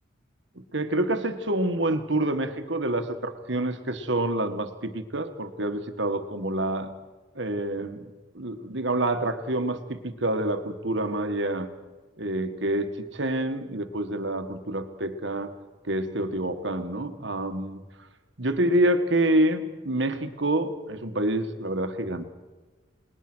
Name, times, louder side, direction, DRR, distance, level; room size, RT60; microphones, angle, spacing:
voice 1, 0.5-6.9 7.3-11.7 12.2-15.5 15.8-17.8 18.4-22.2, right 1 dB, 65° right, 8 dB, 1.6 m, -27 dB
29.5 x 19.5 x 6.2 m, 1.3 s
head